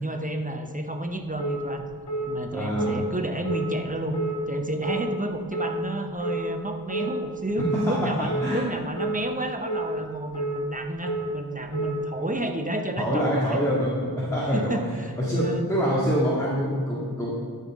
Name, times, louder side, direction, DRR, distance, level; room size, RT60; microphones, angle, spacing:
voice 1, 0.0-1.9 2.3-4.2 4.5-13.6 14.5-15.7, right 1 dB, 20° right, 5 dB, 0.9 m, -31 dB
sound 1, 1.4-1.6 2.1-2.3 2.8-3.0 3.4-3.7 4.1-4.3 4.8-5.0 5.5-5.7 6.2-6.4 6.9-7.1 7.6-7.8 8.3-8.5 9.0-9.2 9.6-9.9 10.3-10.6 11.0-11.2 11.7-11.9, right 3 dB, 75° left, 2.0 m, -29 dB
voice 2, 2.5-2.9 7.6-8.6 13.0-17.3, equal, 10° left, -7 dB, 2.0 m, -25 dB
13.0 x 5.7 x 3.7 m, 2.1 s
wide cardioid pair, 50°, 39 cm